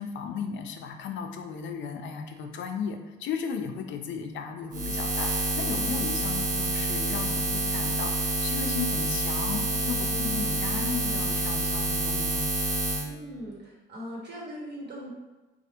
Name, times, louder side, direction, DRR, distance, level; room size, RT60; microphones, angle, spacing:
voice 1, 0.0-12.4, left 6 dB, 70° left, 4 dB, 0.4 m, -35 dB
Buzz, 4.7-13.0, right 1 dB, 40° right, 0.7 m, -28 dB
voice 2, 13.0-15.1, equal, 60° right, -5 dB, 1.3 m, -40 dB
3.2 x 2.4 x 2.8 m, 1.1 s
cardioid pair, 90°, 20 cm